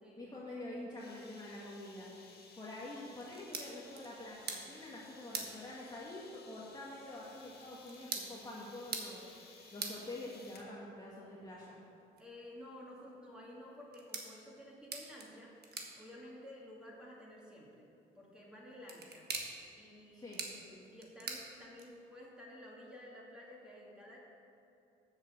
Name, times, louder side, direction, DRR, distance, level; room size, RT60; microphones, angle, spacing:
voice 1, 0.2-2.1 2.6-9.3 9.7-11.8 20.1-20.4, left 1 dB, 20° left, -6 dB, 1.6 m, -46 dB
sound 1, 1.0-10.7, left 4 dB, 55° left, 1.6 m, -58 dB
sound 2, 3.1-22.2, right 4 dB, 55° right, 1.4 m, -48 dB
voice 2, 12.2-15.6 16.0-17.9 18.1-19.3 19.8-24.2, left 1 dB, 5° right, -5 dB, 2.6 m, -52 dB
7.3 x 7.2 x 7.2 m, 2.7 s
cardioid pair, 90°, 20 cm